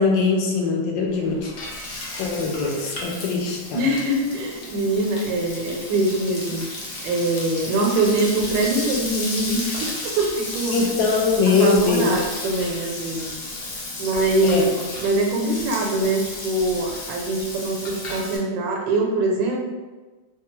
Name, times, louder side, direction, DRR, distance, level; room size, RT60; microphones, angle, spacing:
voice 1, 0.0-1.5 2.2-3.9 10.7-12.2 14.4-14.7, left 4 dB, 85° left, 0 dB, 1.3 m, -21 dB
Frying (food), 1.1-18.4, left 2 dB, 65° left, 0.7 m, -33 dB
voice 2, 3.7-6.6 7.0-10.8 11.5-13.3 14.0-14.7 15.0-19.6, right 2 dB, 85° right, 0 dB, 1.3 m, -23 dB
3.2 x 2.3 x 2.9 m, 1.2 s
omnidirectional pair, 2.0 m